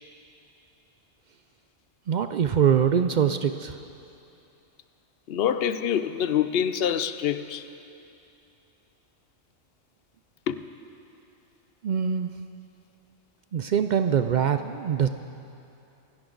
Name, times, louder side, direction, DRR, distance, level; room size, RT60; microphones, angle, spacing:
voice 1, 2.1-3.8 11.8-12.3 13.5-15.1, right 8 dB, 70° right, 9 dB, 0.4 m, -23 dB
voice 2, 5.3-7.7 10.5-10.6, left 9 dB, 60° left, 12 dB, 0.7 m, -26 dB
26.5 x 11.0 x 3.9 m, 2.8 s
omnidirectional pair, 1.3 m